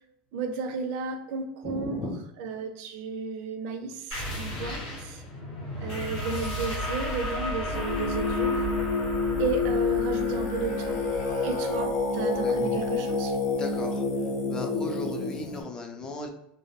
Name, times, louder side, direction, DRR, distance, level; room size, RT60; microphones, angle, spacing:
voice 1, 0.3-2.1 2.4-5.2 5.8-8.7 9.4-11.0 11.4-13.3, right 4 dB, 65° right, 5 dB, 0.4 m, -33 dB
voice 2, 1.6-2.1 12.3-12.5 13.6-14.1 14.5-16.3, left 2 dB, 20° left, 3 dB, 0.4 m, -36 dB
sound 1, 4.1-13.3, left 1 dB, 85° left, 1.0 m, -34 dB
Singing, 7.7-15.6, left 4 dB, 70° left, 0.6 m, -28 dB
2.2 x 2.0 x 2.8 m, 0.79 s
supercardioid pair, 140°, 4 cm